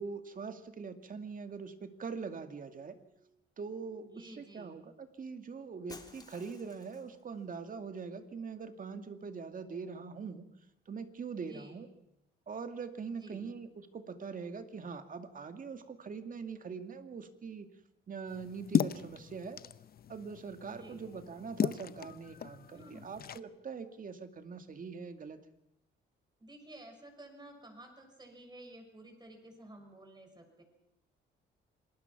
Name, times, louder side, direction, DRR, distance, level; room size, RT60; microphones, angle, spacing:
voice 1, 0.0-3.3 3.6-10.5 10.9-11.9 12.5-17.7 18.1-19.6 20.1-25.4, right 5 dB, 45° right, 8 dB, 2.1 m, -43 dB
voice 2, 4.0-4.8 11.4-11.8 13.1-13.5 20.7-21.1 22.7-23.2 26.4-30.6, right 1 dB, 20° right, 5 dB, 6.4 m, -52 dB
Shatter, 5.9-7.2, left 2 dB, 20° left, 3.1 m, -53 dB
sound 1, 18.3-23.4, left 8 dB, 50° left, 0.8 m, -36 dB
27.0 x 20.0 x 6.0 m, 0.83 s
cardioid pair, 90°, 20 cm